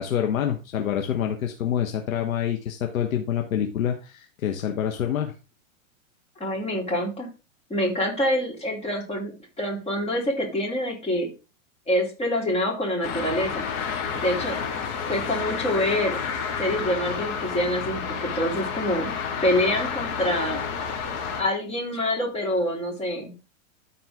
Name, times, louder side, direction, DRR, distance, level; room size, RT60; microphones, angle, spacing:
voice 1, 0.0-5.3, left 9 dB, 75° left, 4 dB, 1.3 m, -27 dB
voice 2, 6.4-7.3 7.7-9.3 9.6-11.3 11.9-13.6 14.1-14.6 15.1-16.2 16.6-19.1 19.4-20.6 21.4-23.3, left 1 dB, 15° left, -1 dB, 3.2 m, -26 dB
sound 1, 13.0-21.4, left 6 dB, 40° left, 2.3 m, -30 dB
13.0 x 4.4 x 3.7 m, 0.30 s
hypercardioid pair, 120°, 42 cm